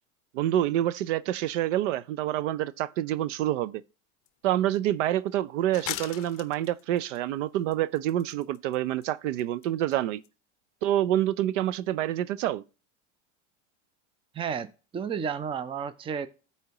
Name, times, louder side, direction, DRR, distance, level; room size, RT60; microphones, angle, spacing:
voice 1, 0.3-3.8 4.4-10.2 10.8-12.6, right 12 dB, 90° right, 0.5 m, -27 dB
sound 1, 4.3-4.4 4.7-4.8 5.7-7.2 7.7-8.8 9.0-9.1 9.4-9.7 9.9-10.0 10.2-10.3, left 14 dB, 40° left, 0.6 m, -38 dB
voice 2, 14.3-16.3, right 7 dB, 15° right, 0.4 m, -32 dB
13.0 x 4.3 x 2.9 m
supercardioid pair, 120°, 36 cm